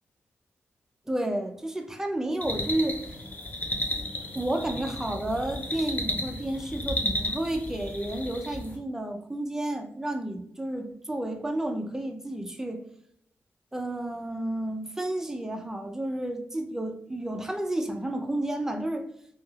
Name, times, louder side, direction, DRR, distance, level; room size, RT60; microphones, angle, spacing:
voice 1, 1.1-3.0 4.3-12.8 13.7-19.1, right 1 dB, 10° right, 5 dB, 0.4 m, -31 dB
sound 1, 2.4-8.8, left 1 dB, 35° left, 0.6 m, -33 dB
3.1 x 2.7 x 2.3 m, 0.68 s
wide cardioid pair, 115°, 5 cm